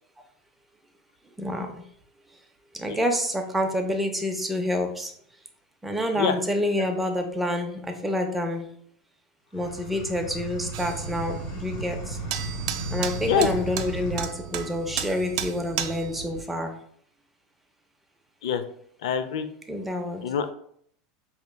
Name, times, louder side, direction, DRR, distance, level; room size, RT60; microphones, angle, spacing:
voice 1, 1.4-1.8 2.7-5.1 5.8-8.7 9.5-12.2 12.9-16.7 19.7-20.2, left 1 dB, 5° right, 3 dB, 0.4 m, -28 dB
sound 1, 9.5-14.3, right 1 dB, 60° left, 1.0 m, -35 dB
sound 2, 10.7-16.4, right 9 dB, 65° right, 0.3 m, -34 dB
voice 2, 19.0-19.5 20.2-20.5, left 7 dB, 90° left, 10 dB, 0.4 m, -25 dB
4.5 x 2.9 x 2.2 m, 0.65 s
supercardioid pair, 160°, 3 cm